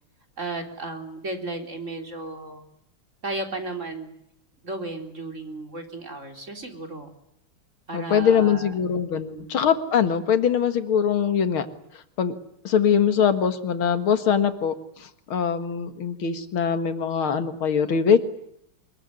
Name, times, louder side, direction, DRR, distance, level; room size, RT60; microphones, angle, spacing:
voice 1, 0.4-2.7 3.2-4.1 4.6-7.1 7.9-8.7 9.1-9.6, right 2 dB, 35° right, 4 dB, 3.9 m, -34 dB
voice 2, 7.9-11.7 12.2-12.3 12.6-18.2, left 7 dB, 75° left, 9 dB, 2.6 m, -22 dB
24.5 x 22.0 x 9.8 m, 0.75 s
omnidirectional pair, 2.3 m